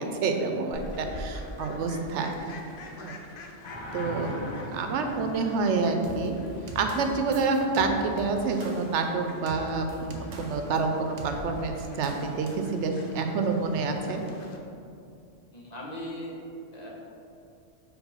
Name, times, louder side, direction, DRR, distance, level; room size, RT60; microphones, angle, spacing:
voice 1, 0.0-2.5 3.0-3.2 3.9-6.3 6.7-14.2, right 4 dB, 90° right, 5 dB, 0.9 m, -28 dB
Fowl, 0.7-14.6, left 1 dB, 60° left, 0.7 m, -46 dB
voice 2, 1.0-1.7 15.5-16.4 16.7-16.9, left 1 dB, 40° left, -4 dB, 1.0 m, -40 dB
sound 1, 3.6-9.4 12.9-13.1, left 1 dB, 90° left, 1.6 m, -42 dB
sound 2, 6.0-10.8 11.2-11.4 12.0-12.7, right 1 dB, 45° right, 0.6 m, -42 dB
4.7 x 3.6 x 5.5 m, 2.6 s
omnidirectional pair, 1.2 m